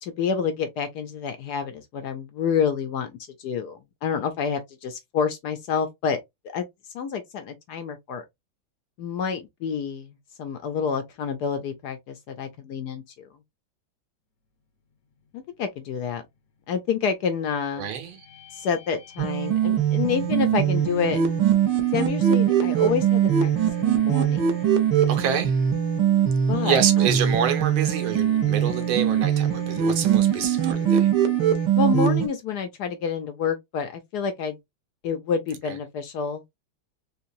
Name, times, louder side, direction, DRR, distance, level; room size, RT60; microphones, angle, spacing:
voice 1, 0.0-3.1 3.4-6.2 6.4-6.7 6.9-8.2 9.0-13.3 15.3-16.2 16.7-17.9 18.5-21.2 21.9-23.5 23.8-24.6 26.5-27.2 31.8-34.6 35.0-36.4, left 6 dB, 70° left, 1.0 m, -28 dB
voice 2, 17.8-18.2 25.1-25.5 26.6-31.1, right 8 dB, 85° right, 1.7 m, -27 dB
sound 1, 18.0-32.1, left 13 dB, 55° left, 0.9 m, -39 dB
sound 2, 19.2-32.3, right 10 dB, 70° right, 1.3 m, -22 dB
3.7 x 2.9 x 2.5 m
omnidirectional pair, 2.2 m